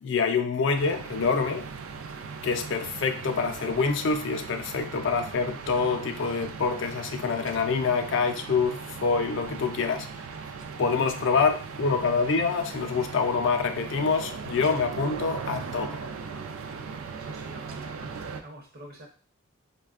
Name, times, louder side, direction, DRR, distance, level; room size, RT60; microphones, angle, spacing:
voice 1, 0.0-1.6 2.4-10.1 10.8-16.1, left 4 dB, 60° left, 0.3 m, -26 dB
sound 1, 0.8-18.4, right 5 dB, 80° right, 0.3 m, -38 dB
voice 2, 17.2-19.1, right 1 dB, 45° right, 0.6 m, -47 dB
4.1 x 2.2 x 2.4 m
head